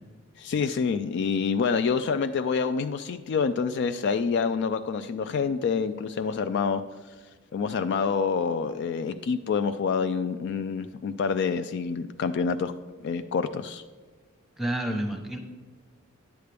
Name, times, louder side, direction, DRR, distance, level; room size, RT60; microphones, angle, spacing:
voice 1, 0.4-6.8 7.5-12.7 13.0-13.8, left 5 dB, 55° left, 10 dB, 0.3 m, -27 dB
voice 2, 14.6-15.4, right 1 dB, ahead, 3 dB, 0.9 m, -29 dB
10.0 x 8.1 x 3.4 m, 1.4 s
head